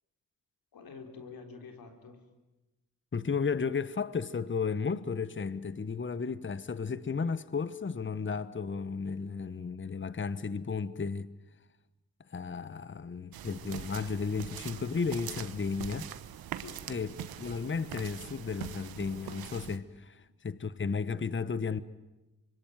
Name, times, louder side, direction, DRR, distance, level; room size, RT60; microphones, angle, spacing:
voice 1, 0.7-2.3 16.6-16.9, left 4 dB, 75° left, 4.0 m, -48 dB
voice 2, 3.1-11.3 12.3-16.1 16.9-17.1 17.4-21.8, left 5 dB, 35° left, 1.1 m, -34 dB
sound 1, 13.3-19.8, right 11 dB, 90° right, 1.2 m, -43 dB
25.5 x 22.5 x 9.4 m
supercardioid pair, 45°, 35 cm